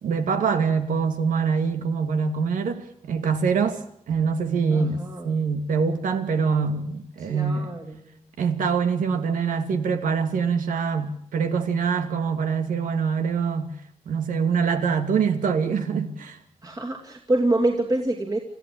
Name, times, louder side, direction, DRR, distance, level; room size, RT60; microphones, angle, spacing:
voice 1, 0.0-3.8 4.1-7.7 8.4-13.7 14.1-16.4, right 5 dB, 85° right, 2.6 m, -24 dB
voice 2, 4.7-5.4 7.2-8.2 16.6-18.4, right 2 dB, 30° right, 2.8 m, -26 dB
28.0 x 15.0 x 8.7 m
wide cardioid pair, 120°, 13 cm